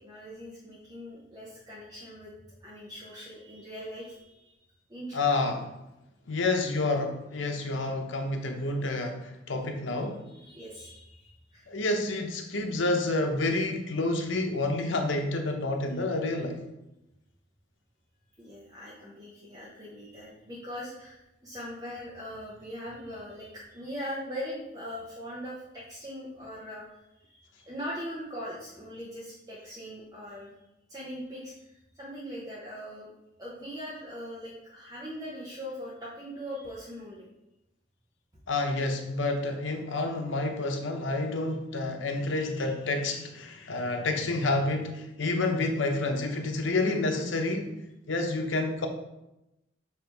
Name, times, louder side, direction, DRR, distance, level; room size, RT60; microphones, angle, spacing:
voice 1, 0.0-2.3 2.6-4.5 4.9-5.3 10.3-11.7 18.4-26.9 27.2-30.5 30.9-31.5 31.9-33.1 33.4-37.3, equal, 20° right, -7 dB, 0.9 m, -41 dB
voice 2, 5.1-5.7 6.3-10.2 11.7-16.6 38.5-47.7 48.1-48.9, left 2 dB, 85° left, 4 dB, 0.8 m, -29 dB
7.1 x 3.0 x 4.6 m, 0.92 s
head